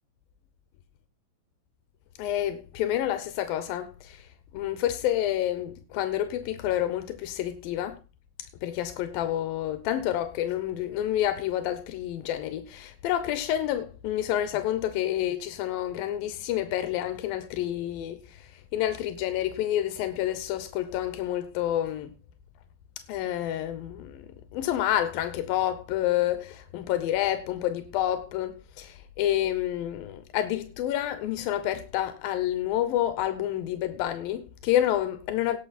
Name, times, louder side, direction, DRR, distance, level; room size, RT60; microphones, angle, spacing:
voice 1, 2.2-4.2 4.5-8.0 8.6-22.1 23.1-35.6, left 12 dB, 90° left, 2.7 m, -29 dB
18.5 x 6.6 x 4.2 m
omnidirectional pair, 4.0 m